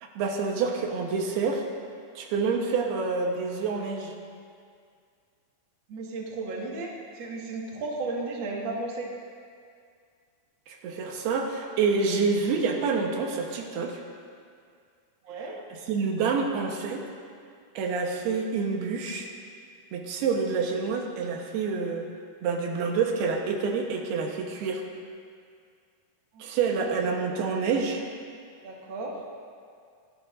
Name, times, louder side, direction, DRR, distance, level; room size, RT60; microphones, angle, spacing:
voice 1, 0.0-1.7 2.2-4.1 10.7-14.0 15.9-17.0 17.8-19.3 19.9-22.1 22.4-24.8 26.4-28.0, right 5 dB, 80° right, 1 dB, 3.1 m, -27 dB
voice 2, 5.9-9.1 15.2-15.8 26.3-26.4 26.8-27.0 28.6-29.2, right 3 dB, 40° right, -2 dB, 1.8 m, -34 dB
27.0 x 12.5 x 2.6 m, 2.2 s
omnidirectional pair, 4.5 m